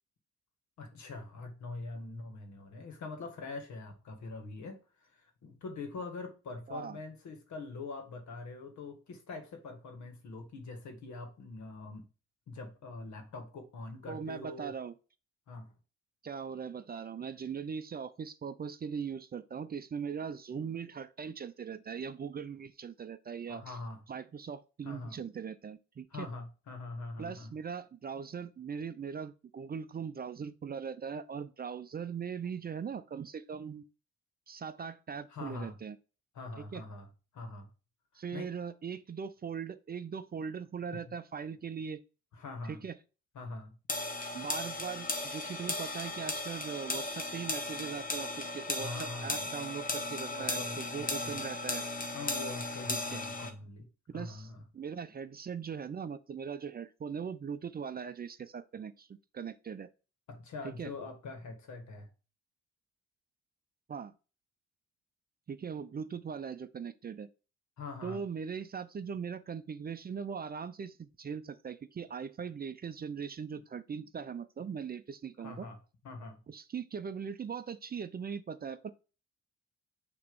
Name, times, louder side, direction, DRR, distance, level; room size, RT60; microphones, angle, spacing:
voice 1, 0.8-12.0 12.5-14.7 15.5-15.7 23.5-24.0 24.8-25.2 26.1-27.5 35.3-35.8 36.3-37.1 37.3-37.7 38.3-38.5 42.3-42.8 43.3-43.8 48.8-49.5 50.3-51.4 52.1-53.9 54.1-54.6 60.3-62.1 67.8-68.2 75.4-75.8 76.0-76.4, left 3 dB, 70° left, 1.7 m, -43 dB
voice 2, 14.1-14.9 16.2-23.8 24.1-26.3 27.2-33.8 34.5-36.0 36.6-36.8 38.1-42.0 42.7-42.9 44.3-51.9 52.9-53.2 54.1-59.9 60.6-60.9 63.9-64.1 65.5-67.3 68.0-75.7 76.5-78.9, right 6 dB, 30° right, 0.5 m, -40 dB
sound 1, 43.9-53.5, left 2 dB, 30° left, 1.2 m, -36 dB
6.4 x 3.0 x 5.3 m
cardioid pair, 90°, 30 cm